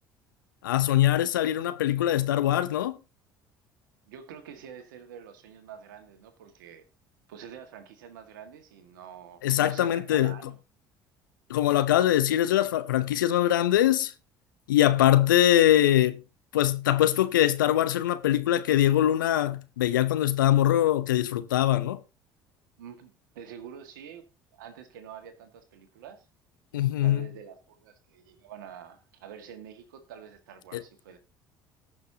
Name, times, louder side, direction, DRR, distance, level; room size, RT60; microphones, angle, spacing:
voice 1, 0.6-3.0 9.4-10.4 11.5-14.1 14.7-16.2 16.5-22.0 26.7-27.3 30.7-30.8, left 12 dB, 85° left, 0.7 m, -23 dB
voice 2, 4.1-6.8 7.3-10.6 22.8-24.2 24.5-26.3 27.0-31.2, right 8 dB, 80° right, 1.8 m, -46 dB
18.5 x 6.3 x 2.8 m
hypercardioid pair, 65°, 10 cm